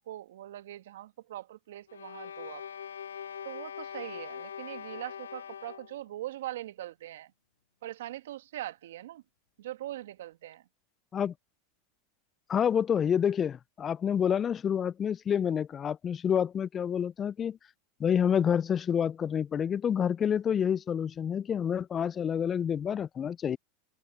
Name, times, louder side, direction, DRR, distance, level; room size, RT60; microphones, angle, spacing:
voice 1, 0.0-2.6 3.4-7.3 7.8-9.2 9.6-10.6, right 14 dB, 75° right, 1.8 m, -41 dB
sound 1, 1.9-6.0, left 8 dB, 85° left, 2.4 m, -42 dB
voice 2, 12.5-17.6 18.0-23.6, left 8 dB, 30° left, 0.4 m, -28 dB
hypercardioid pair, 95°, 0 cm